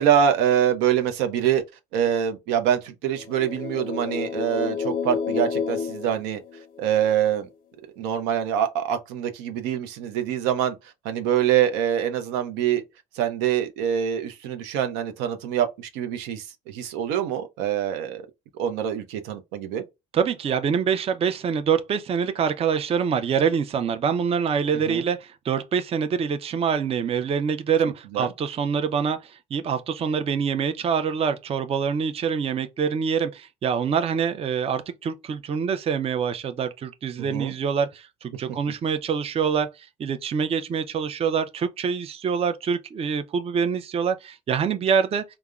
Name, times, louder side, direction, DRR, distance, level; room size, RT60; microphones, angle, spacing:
voice 1, 0.0-1.6 1.9-6.4 6.8-7.5 8.0-10.8 11.0-12.8 13.1-18.3 18.6-19.8 24.9-25.1 28.1-28.3 37.2-37.5, right 9 dB, 85° right, 0.5 m, -25 dB
sound 1, 3.2-7.0, left 6 dB, 55° left, 0.4 m, -30 dB
voice 2, 20.1-45.2, right 6 dB, 35° right, 0.4 m, -25 dB
3.5 x 2.0 x 2.2 m
supercardioid pair, 85°, 18 cm